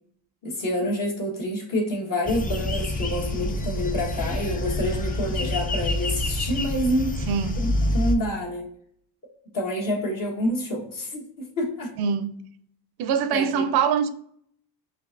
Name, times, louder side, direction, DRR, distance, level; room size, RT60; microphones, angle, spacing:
voice 1, 0.4-7.2 7.6-8.7 9.5-11.9 13.3-13.6, equal, 50° left, 1.4 m, -27 dB
sound 1, 2.3-8.2, left 1 dB, 20° left, 0.4 m, -27 dB
voice 2, 7.3-7.6 12.0-12.5 13.0-14.1, right 7 dB, 65° right, 0.5 m, -24 dB
5.2 x 2.6 x 2.5 m
cardioid pair, 105°, 42 cm